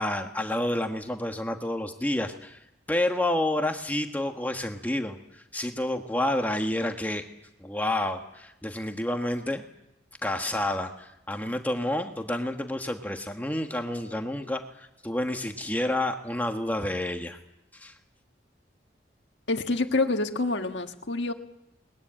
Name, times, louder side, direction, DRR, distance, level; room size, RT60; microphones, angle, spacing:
voice 1, 0.0-2.6 2.9-7.3 7.6-9.6 10.2-17.4 17.7-17.9, left 1 dB, 10° left, 4 dB, 1.4 m, -29 dB
voice 2, 19.5-21.3, left 2 dB, 80° left, 4 dB, 1.5 m, -27 dB
21.0 x 21.0 x 8.9 m, 0.81 s
head